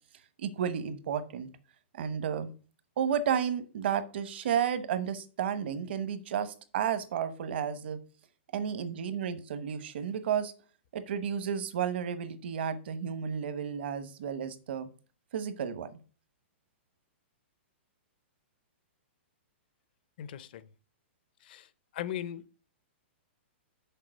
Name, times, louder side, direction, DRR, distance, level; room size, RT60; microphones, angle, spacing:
voice 1, 0.4-1.5 1.9-2.5 3.0-8.0 8.5-10.5 10.9-14.9 15.3-15.9, right 8 dB, 60° right, 1.0 m, -32 dB
voice 2, 20.2-20.7 21.4-22.4, left 11 dB, 50° left, 0.5 m, -39 dB
6.7 x 4.8 x 6.3 m
hypercardioid pair, 165°, 7 cm